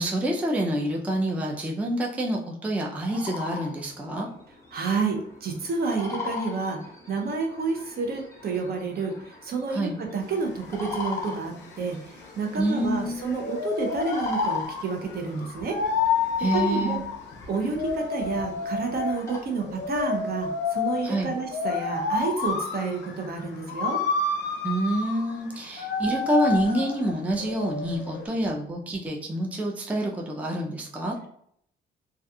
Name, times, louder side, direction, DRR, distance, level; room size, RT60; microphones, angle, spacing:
voice 1, 0.0-4.3 9.7-10.0 12.5-13.2 16.4-17.0 21.0-21.3 24.6-31.2, right 1 dB, 5° right, -1 dB, 0.4 m, -27 dB
sound 1, 2.9-19.4, left 3 dB, 15° left, 0.8 m, -41 dB
voice 2, 4.7-6.8 7.1-9.1 9.4-15.8 16.5-17.0 17.5-24.0, right 4 dB, 50° right, 2 dB, 0.6 m, -29 dB
sound 2, 10.2-28.3, left 4 dB, 60° left, 0.5 m, -30 dB
2.3 x 2.3 x 2.6 m, 0.68 s
cardioid pair, 90°, 20 cm